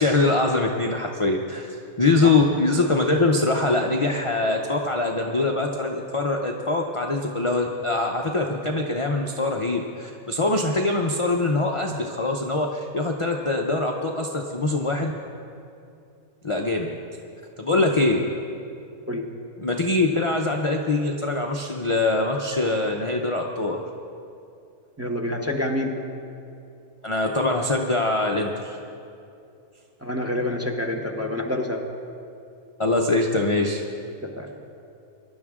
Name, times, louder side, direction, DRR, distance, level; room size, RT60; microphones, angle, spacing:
voice 1, 0.0-15.1 16.4-16.9 17.6-18.2 19.6-23.8 27.0-28.8 32.8-33.8, left 2 dB, 35° left, 1 dB, 0.5 m, -23 dB
voice 2, 25.0-26.0 30.0-31.8 34.2-34.5, left 1 dB, 10° right, 2 dB, 0.9 m, -27 dB
21.5 x 11.5 x 3.7 m, 2.6 s
omnidirectional pair, 1.6 m